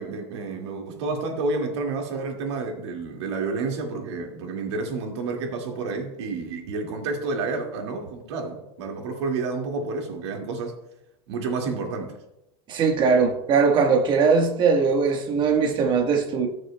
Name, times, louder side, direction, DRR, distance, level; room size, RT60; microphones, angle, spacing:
voice 1, 0.0-10.8 11.3-12.1, right 3 dB, 85° right, 2.1 m, -30 dB
voice 2, 12.7-16.5, right 5 dB, 35° right, 1.3 m, -20 dB
18.0 x 6.4 x 2.2 m
supercardioid pair, 145°, 14 cm